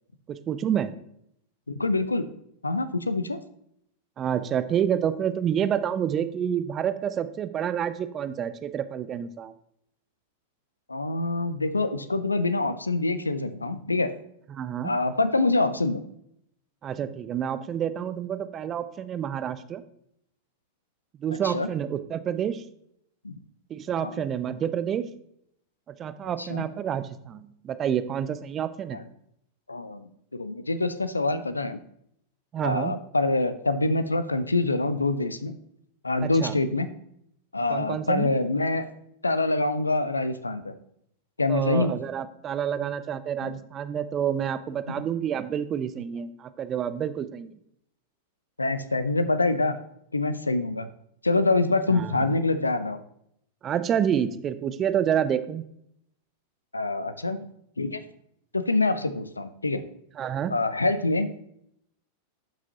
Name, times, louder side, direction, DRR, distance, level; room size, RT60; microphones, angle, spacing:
voice 1, 0.3-0.9 4.2-9.5 14.5-14.9 16.8-19.8 21.2-22.6 23.7-25.1 25.9-29.0 32.5-33.0 36.2-36.6 37.7-38.3 41.5-47.5 51.9-52.2 53.6-55.6 60.2-60.5, right 9 dB, 30° right, 13 dB, 0.5 m, -28 dB
voice 2, 1.7-2.3 2.6-3.4 10.9-14.1 14.8-16.0 21.4-21.7 23.2-23.4 24.0-24.2 26.4-26.7 28.9-29.0 29.7-31.8 32.6-35.6 36.0-36.9 37.5-38.9 39.2-40.7 41.4-41.9 43.4-43.5 48.6-49.8 50.1-50.9 51.2-53.0 56.7-57.5 57.8-58.0 58.5-59.8 60.5-61.3, left 2 dB, 80° left, 12 dB, 0.6 m, -25 dB
11.5 x 6.1 x 2.9 m, 0.73 s
figure-of-eight pair, 90°, 0 cm